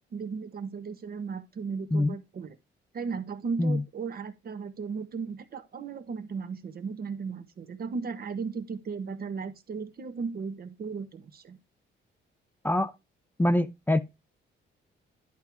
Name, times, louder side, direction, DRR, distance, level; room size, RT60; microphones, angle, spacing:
voice 1, 0.1-2.6 2.9-11.6, right 5 dB, 50° right, 1.3 m, -36 dB
voice 2, 13.4-14.0, left 1 dB, 10° left, 0.6 m, -24 dB
11.0 x 4.6 x 3.6 m
cardioid pair, 90°, 20 cm